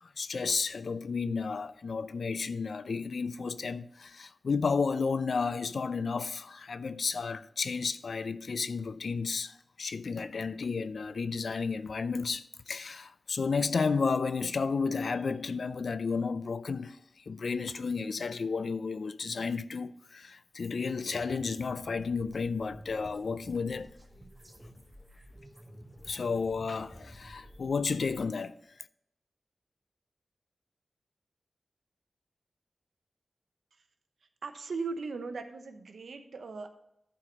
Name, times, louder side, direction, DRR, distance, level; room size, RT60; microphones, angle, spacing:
voice 1, 0.0-17.0 17.3-23.9 26.0-28.6, left 5 dB, 70° left, 0.4 m, -32 dB
sound 1, 20.9-28.2, equal, 10° right, 1.8 m, -52 dB
voice 2, 34.4-36.7, right 4 dB, 85° right, 0.9 m, -38 dB
11.0 x 4.7 x 5.2 m
wide cardioid pair, 70°, 0 cm